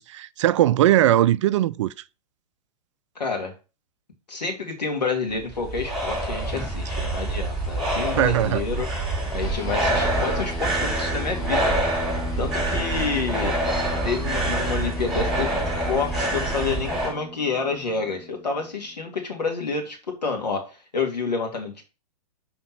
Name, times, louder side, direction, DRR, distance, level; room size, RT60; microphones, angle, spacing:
voice 1, 0.0-1.9 8.1-8.6 8.9-9.0, right 13 dB, 45° right, 0.4 m, -20 dB
voice 2, 3.2-3.5 4.3-8.9 9.3-11.7 12.4-13.6 14.0-21.9, left 4 dB, 80° left, 2.5 m, -28 dB
sound 1, 5.3-17.1, right 1 dB, ahead, 3.9 m, -26 dB
sound 2, 9.4-19.1, left 3 dB, 40° left, 3.4 m, -38 dB
5.8 x 4.3 x 6.0 m
figure-of-eight pair, 115°, 21 cm